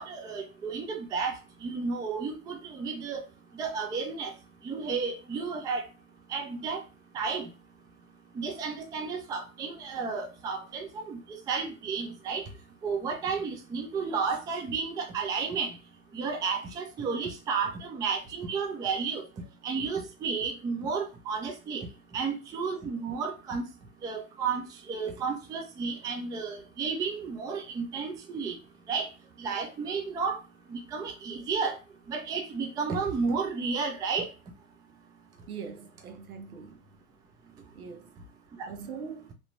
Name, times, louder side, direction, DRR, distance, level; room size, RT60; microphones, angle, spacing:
voice 1, 0.0-1.3 1.6-3.2 3.6-4.3 4.6-5.8 6.3-6.8 7.1-7.5 8.4-11.2 11.5-12.5 12.8-15.8 16.1-19.2 19.6-21.9 22.1-23.6 24.0-28.6 28.9-29.1 29.4-30.4 30.7-31.8 32.1-34.3 38.6-38.7, right 5 dB, 10° right, 0.3 m, -32 dB
voice 2, 35.5-37.0 37.7-38.1 38.7-39.3, right 6 dB, 75° right, 0.7 m, -42 dB
3.3 x 2.8 x 2.6 m
figure-of-eight pair, 75°, 43 cm